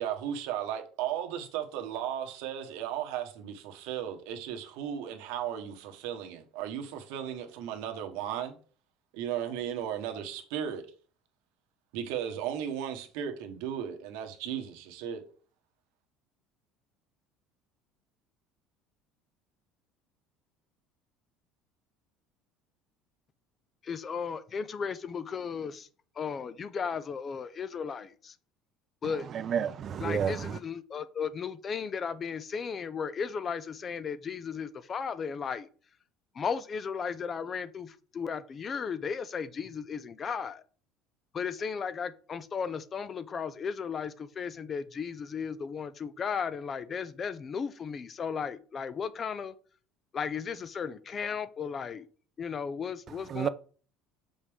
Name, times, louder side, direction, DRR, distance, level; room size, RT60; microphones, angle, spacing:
voice 1, 0.0-8.5 9.1-10.8 11.9-15.2, right 9 dB, 80° right, 1.3 m, -35 dB
voice 2, 23.8-25.9 26.2-28.3 29.0-29.3 30.0-35.7 36.4-40.6 41.3-49.5 50.1-52.1 52.4-53.5, left 6 dB, 30° left, 0.6 m, -35 dB
voice 3, 29.3-30.6 53.3-53.5, right 8 dB, 40° right, 0.5 m, -30 dB
6.5 x 5.2 x 3.6 m
cardioid pair, 120°, 0 cm